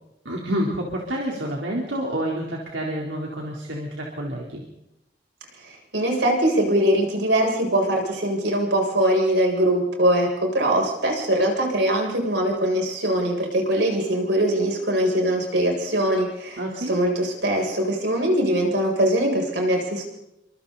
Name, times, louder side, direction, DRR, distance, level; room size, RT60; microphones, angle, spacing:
voice 1, 0.2-4.6 16.6-16.9, equal, 90° right, -2 dB, 4.0 m, -28 dB
voice 2, 5.6-20.0, right 1 dB, 75° right, 0 dB, 7.7 m, -22 dB
30.0 x 26.5 x 4.2 m, 0.86 s
head